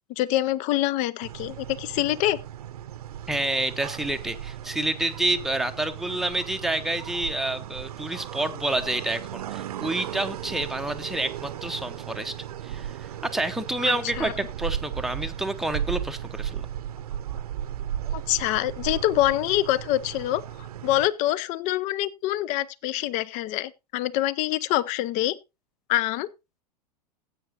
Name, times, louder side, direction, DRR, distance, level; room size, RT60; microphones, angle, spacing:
voice 1, 0.1-2.4 13.9-14.3 18.1-20.4 20.8-25.4 25.9-26.3, left 15 dB, 35° left, 0.6 m, -25 dB
sound 1, 1.2-21.1, right 10 dB, 65° right, 0.7 m, -36 dB
voice 2, 3.3-12.4 12.6-16.7, right 1 dB, ahead, 0.8 m, -28 dB
15.5 x 8.4 x 2.9 m
figure-of-eight pair, 95°, 21 cm